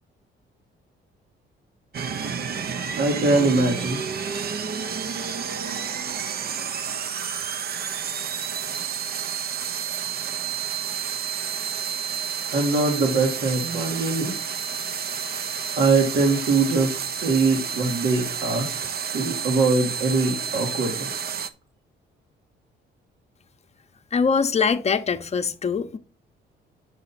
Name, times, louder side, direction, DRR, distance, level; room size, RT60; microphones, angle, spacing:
sound 1, 1.9-21.5, right 7 dB, 50° right, 0.7 m, -30 dB
voice 1, 3.0-4.0 12.5-14.3 15.8-18.7 19.1-21.4, right 3 dB, 75° right, 1.8 m, -22 dB
voice 2, 24.1-26.0, left 5 dB, 35° left, 0.8 m, -23 dB
7.7 x 5.6 x 4.1 m
cardioid pair, 90°, 20 cm